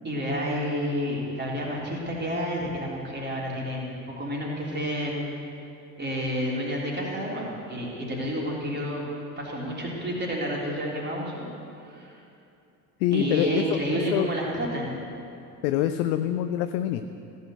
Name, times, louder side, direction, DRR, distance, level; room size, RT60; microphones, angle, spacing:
voice 1, 0.0-5.2 6.0-9.1 9.4-11.5 11.9-12.2 13.1-14.9, equal, 25° right, -4 dB, 3.7 m, -30 dB
voice 2, 13.0-13.6 14.1-14.3 15.6-17.0, left 12 dB, 55° left, 9 dB, 0.6 m, -25 dB
16.0 x 6.7 x 7.9 m, 2.7 s
figure-of-eight pair, 60°, 45 cm